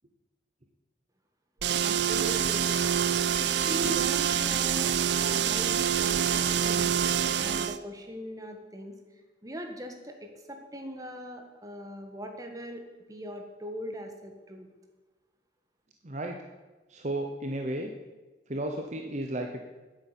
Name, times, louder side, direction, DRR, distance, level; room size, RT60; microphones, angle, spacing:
sound 1, 1.6-7.8, right 8 dB, 80° right, 0.6 m, -26 dB
voice 1, 1.8-2.7 3.4-7.0 7.4-8.9 9.4-14.7, equal, 20° right, 4 dB, 1.6 m, -40 dB
voice 2, 16.0-16.4 16.9-17.9 18.5-19.7, right 1 dB, 40° right, 3 dB, 0.9 m, -33 dB
9.5 x 8.2 x 8.2 m, 1.2 s
head